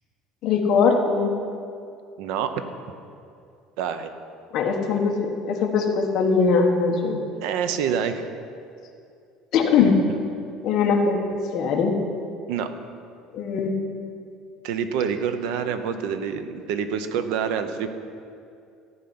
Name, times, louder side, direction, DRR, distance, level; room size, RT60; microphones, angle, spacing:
voice 1, 0.4-1.4 4.5-7.2 9.5-10.0 10.6-11.9 13.3-13.8, left 5 dB, 40° left, 1 dB, 1.4 m, -21 dB
voice 2, 2.2-2.6 3.8-4.1 7.4-8.3 12.5-12.7 14.6-17.9, right 7 dB, 65° right, 9 dB, 0.9 m, -27 dB
14.0 x 5.7 x 9.6 m, 2.4 s
cardioid pair, 175°, 0 cm